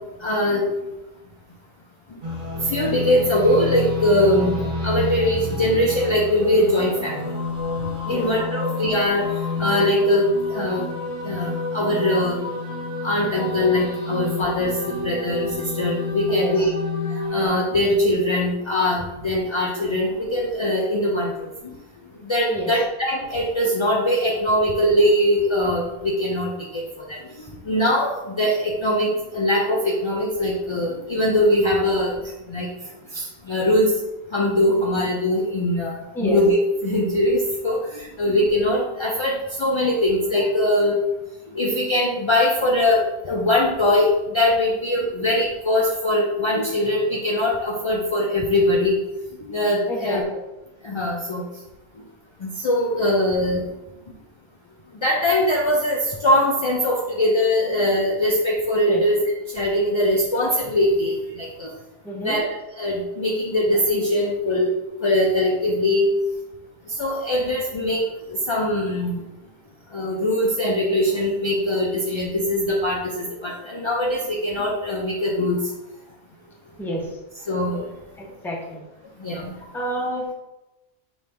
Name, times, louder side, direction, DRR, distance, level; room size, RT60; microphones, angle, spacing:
voice 1, 0.2-0.7 2.6-4.6 4.8-7.3 7.8-9.3 9.6-10.8 11.2-12.5 13.0-16.7 17.1-21.5 22.2-32.7 33.1-33.9 34.3-36.6 36.8-41.0 41.5-49.0 49.5-50.2 50.8-51.5 52.4-53.6 55.0-59.2 59.5-61.7 62.2-62.5 62.8-64.7 65.0-66.1 66.9-68.0 68.3-69.2 69.9-75.6 77.5-77.9 79.2-79.5, left 1 dB, 50° left, -2 dB, 0.3 m, -22 dB
sound 1, 2.2-17.5, left 3 dB, 50° right, 1.0 m, -29 dB
voice 2, 49.9-50.4 58.9-59.0 62.0-62.4 76.8-77.1 78.2-78.8 79.7-80.3, right 1 dB, 5° left, -1 dB, 0.6 m, -29 dB
5.2 x 3.0 x 3.3 m, 0.98 s
omnidirectional pair, 1.1 m